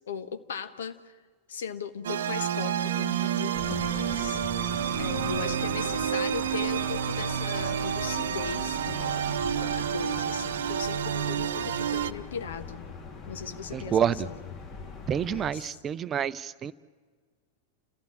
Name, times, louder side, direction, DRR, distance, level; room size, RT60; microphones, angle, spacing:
voice 1, 0.1-1.1 1.5-4.4 5.0-12.8 13.3-14.4 15.3-15.8, left 6 dB, 65° left, 10 dB, 1.3 m, -38 dB
sound 1, 2.0-12.1, right 9 dB, 60° right, 0.7 m, -29 dB
sound 2, 3.6-15.5, left 5 dB, 35° left, 2.7 m, -41 dB
voice 2, 13.7-14.3 15.1-16.7, right 9 dB, 25° right, 16 dB, 0.6 m, -28 dB
29.5 x 15.0 x 8.8 m, 1.5 s
figure-of-eight pair, 90°, 0 cm